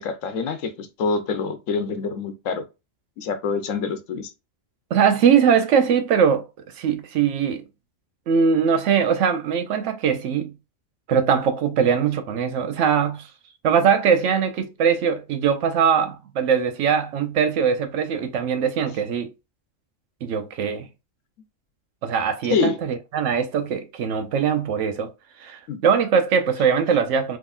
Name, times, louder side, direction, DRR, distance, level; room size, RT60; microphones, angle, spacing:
voice 1, 0.0-2.6 3.2-4.3 22.5-22.8 25.7-25.8, left 5 dB, 85° left, 1.1 m, -26 dB
voice 2, 4.9-6.4 6.8-7.6 8.3-10.5 11.1-13.3 13.6-19.3 20.2-20.9 22.0-25.1 25.4-27.4, right 7 dB, 75° right, 0.9 m, -21 dB
3.7 x 2.9 x 2.4 m
omnidirectional pair, 1.3 m